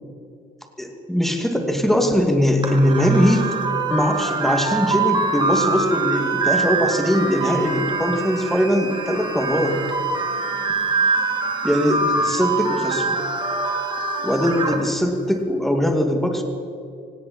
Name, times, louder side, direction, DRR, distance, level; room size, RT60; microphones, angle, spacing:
voice 1, 0.8-3.5 3.9-9.8 11.6-13.2 14.2-16.4, equal, ahead, 3 dB, 2.3 m, -21 dB
sound 1, 2.6-14.8, right 4 dB, 25° right, 2.6 m, -24 dB
18.0 x 17.0 x 4.3 m, 2.6 s
cardioid pair, 110°, 17 cm